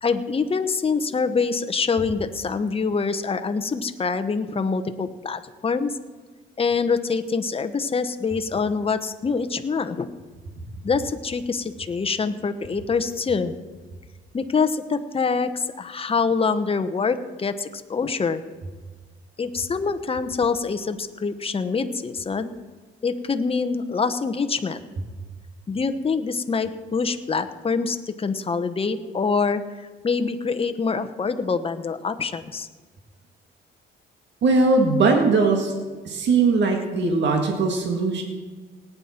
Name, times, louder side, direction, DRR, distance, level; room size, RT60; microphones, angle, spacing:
voice 1, 0.0-5.9 6.6-10.1 10.8-13.5 14.3-18.4 19.4-22.5 23.0-24.8 25.7-29.6 30.0-32.7 34.7-35.0, left 5 dB, 30° left, 9 dB, 0.9 m, -25 dB
voice 2, 34.4-35.7 36.0-38.2, right 3 dB, 65° right, 2 dB, 1.9 m, -20 dB
18.5 x 9.1 x 4.4 m, 1.4 s
cardioid pair, 90°, 20 cm